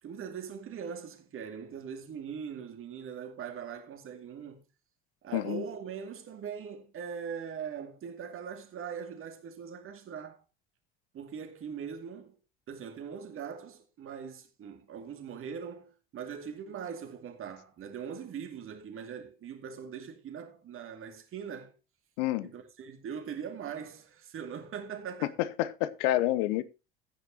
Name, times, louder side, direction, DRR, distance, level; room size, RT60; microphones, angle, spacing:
voice 1, 0.0-4.7 5.2-10.4 11.1-12.4 12.7-21.7 22.4-25.4, right 7 dB, 45° right, 2.4 m, -41 dB
voice 2, 5.3-5.6 22.2-22.5 25.4-26.6, left 15 dB, 60° left, 0.9 m, -28 dB
14.0 x 9.4 x 2.9 m
figure-of-eight pair, 60°, 31 cm